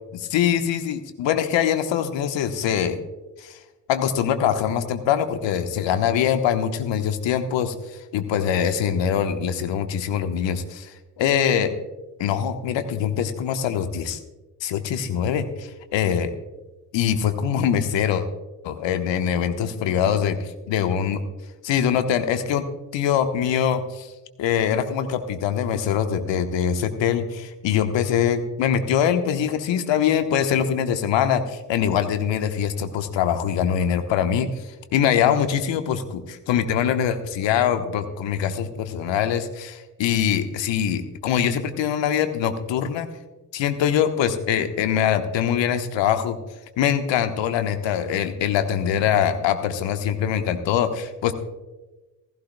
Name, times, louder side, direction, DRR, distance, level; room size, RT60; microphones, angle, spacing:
voice 1, 0.1-3.0 3.4-3.6 3.9-7.7 8.1-11.7 12.2-14.2 14.6-16.3 16.9-18.2 18.6-21.2 21.6-22.6 22.9-24.1 24.4-34.5 34.9-43.1 43.5-46.4 46.8-51.3, left 9 dB, 60° left, 8 dB, 1.2 m, -23 dB
16.5 x 15.5 x 2.2 m, 1.1 s
hypercardioid pair, 45°, 50 cm